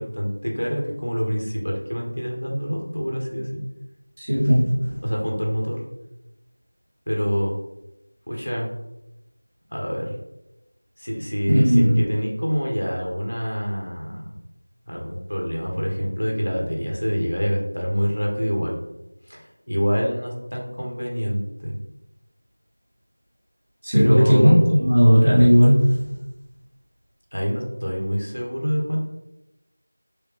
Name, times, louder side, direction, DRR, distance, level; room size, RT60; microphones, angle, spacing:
voice 1, 0.0-3.6 5.0-5.9 7.1-7.5 8.3-8.7 9.7-10.1 11.0-14.3 14.9-18.7 19.3-21.8 23.9-24.7 27.3-29.0, equal, 85° left, -1 dB, 1.3 m, -26 dB
voice 2, 4.2-5.0 11.5-12.0 23.8-25.9, equal, 25° right, -6 dB, 0.9 m, -16 dB
4.9 x 2.2 x 3.2 m, 0.93 s
figure-of-eight pair, 180°, 0 cm